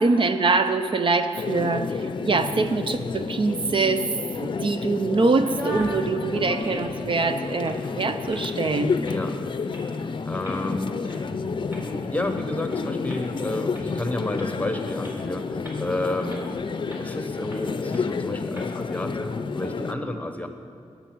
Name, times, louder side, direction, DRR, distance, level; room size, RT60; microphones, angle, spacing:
voice 1, 0.0-4.0 4.4-9.0, right 3 dB, 50° right, 9 dB, 0.6 m, -24 dB
sound 1, 1.3-19.9, left 5 dB, 50° left, 0.5 m, -30 dB
sound 2, 5.4-6.0 6.3-7.1 7.5-7.8 8.3-8.5 9.0-9.3 9.7-9.8 10.4-10.6 11.1-11.2 11.7-12.8 13.1-13.2 13.7-13.8 14.4-14.5 15.0-15.1 15.6-15.9 16.3-16.4 16.9-17.1 17.5-17.6 17.9-18.0 18.5-18.7, left 1 dB, 20° right, 3.6 m, -38 dB
voice 2, 9.0-9.4 10.2-11.1 11.7-16.6 17.0-20.5, left 1 dB, 15° left, 6 dB, 1.1 m, -31 dB
20.0 x 8.1 x 6.2 m, 2.4 s
wide cardioid pair, 125°, 11 cm